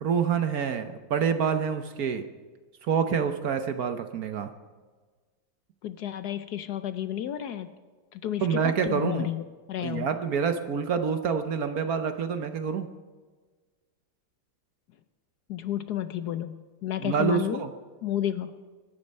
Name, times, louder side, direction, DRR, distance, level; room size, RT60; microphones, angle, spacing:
voice 1, 0.0-2.2 2.8-4.5 8.4-9.3 9.8-12.9 17.0-17.7, right 6 dB, 60° right, 8 dB, 1.2 m, -27 dB
voice 2, 5.8-7.7 8.1-10.1 15.5-17.6 18.0-18.5, left 11 dB, 65° left, 11 dB, 1.1 m, -31 dB
23.5 x 10.5 x 5.4 m, 1.4 s
omnidirectional pair, 2.1 m